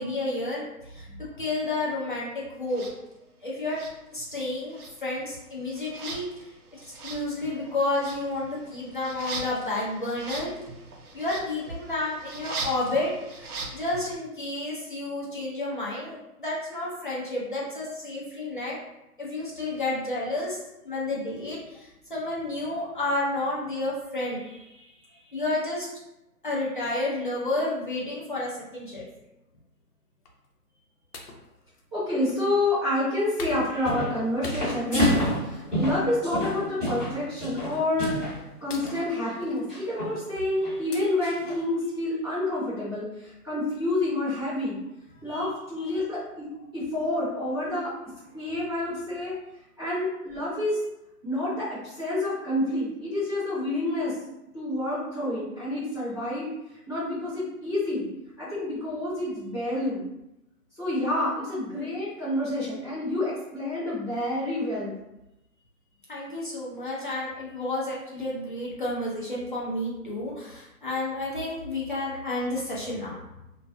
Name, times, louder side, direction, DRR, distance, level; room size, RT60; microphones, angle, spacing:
voice 1, 0.0-2.8 3.4-3.8 4.1-10.5 11.1-18.8 19.2-20.6 20.8-24.9 25.3-25.9 26.4-29.0 45.3-45.5 45.8-46.0 66.1-73.2, left 2 dB, 35° left, -6 dB, 0.4 m, -31 dB
sound 1, 2.7-2.9 3.7-4.4 4.7-14.2, right 3 dB, 70° right, 0.7 m, -40 dB
sound 2, 30.2-30.5 31.1-32.7 33.4-34.2 34.4-35.7 36.1-36.4 37.2-37.4 38.0-38.3 38.7-39.6 40.4-40.6 40.9-41.0, left 1 dB, 75° left, 0.7 m, -42 dB
voice 2, 31.9-38.3 38.6-44.8 45.2-47.9 48.3-49.4 49.8-50.8 51.2-54.2 54.5-58.1 58.4-60.1 60.8-65.0, left 1 dB, 20° right, -15 dB, 0.8 m, -28 dB
sound 3, 33.6-34.2 34.4-38.4 38.7-39.0 39.7-40.2 40.6-40.7 41.2-41.6, left 1 dB, 10° left, 0.9 m, -28 dB
2.3 x 2.1 x 2.5 m, 0.92 s
hypercardioid pair, 165°, 47 cm